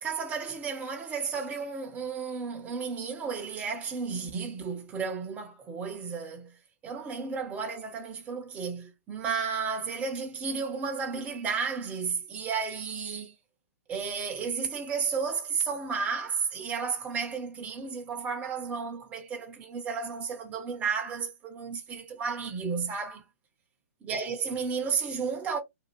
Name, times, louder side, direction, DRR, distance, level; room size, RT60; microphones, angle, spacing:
voice 1, 0.0-6.5 6.8-13.3 13.9-23.2 24.0-25.6, right 5 dB, 15° right, 0.6 m, -33 dB
2.6 x 2.2 x 3.0 m
figure-of-eight pair, 120°, 8 cm